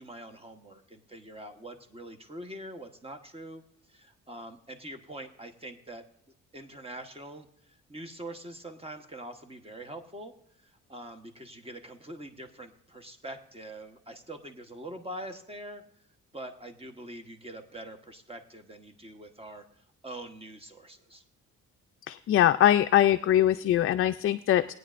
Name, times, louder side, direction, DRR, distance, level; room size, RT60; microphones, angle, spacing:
voice 1, 0.0-3.6 3.9-6.0 6.5-15.8 16.3-21.2, right 1 dB, 20° right, 7 dB, 1.1 m, -44 dB
voice 2, 22.1-24.7, left 12 dB, 45° left, 8 dB, 0.4 m, -22 dB
20.0 x 9.3 x 2.5 m, 0.70 s
cardioid pair, 90°, 30 cm